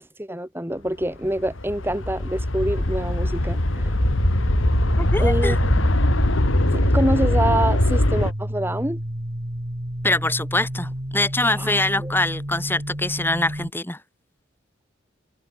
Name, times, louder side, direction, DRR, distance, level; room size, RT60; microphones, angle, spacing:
voice 1, 0.0-3.9 5.2-6.0 6.7-9.0 11.6-12.1, right 1 dB, 10° right, 5.8 m, -26 dB
sound 1, 1.0-8.3, left 1 dB, 90° left, 2.5 m, -21 dB
sound 2, 4.0-13.7, equal, 40° right, 3.9 m, -30 dB
voice 2, 5.0-5.6 10.0-14.0, left 2 dB, 10° left, 3.2 m, -24 dB
head